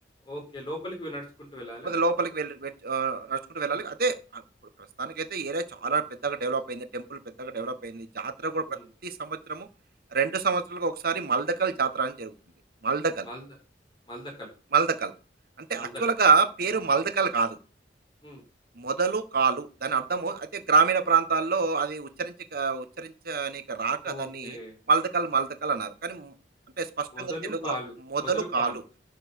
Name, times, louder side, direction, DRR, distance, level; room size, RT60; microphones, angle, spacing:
voice 1, 0.2-1.9 3.7-3.9 8.7-8.9 13.2-13.5 14.1-14.5 15.8-16.0 18.2-18.4 24.0-24.7 27.1-28.7, equal, 30° left, -1 dB, 4.6 m, -38 dB
voice 2, 1.8-4.4 5.0-8.6 9.0-9.7 10.1-12.3 12.8-13.3 14.7-15.1 15.7-17.6 18.8-24.6 24.9-26.3 26.8-27.7 28.1-28.7, right 5 dB, 60° right, 10 dB, 1.4 m, -27 dB
11.5 x 4.3 x 7.1 m, 0.34 s
head